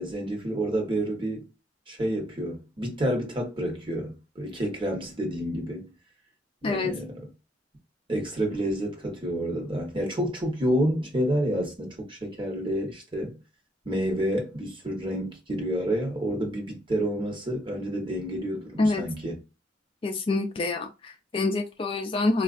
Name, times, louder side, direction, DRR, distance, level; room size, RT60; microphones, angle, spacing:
voice 1, 0.0-1.5 1.9-5.9 6.6-7.2 8.1-13.4 13.8-19.4, equal, 30° right, 1.1 m, -29 dB
voice 2, 6.6-6.9 18.8-19.0 20.0-22.4, left 3 dB, 30° left, 0.4 m, -26 dB
4.2 x 2.4 x 2.4 m
head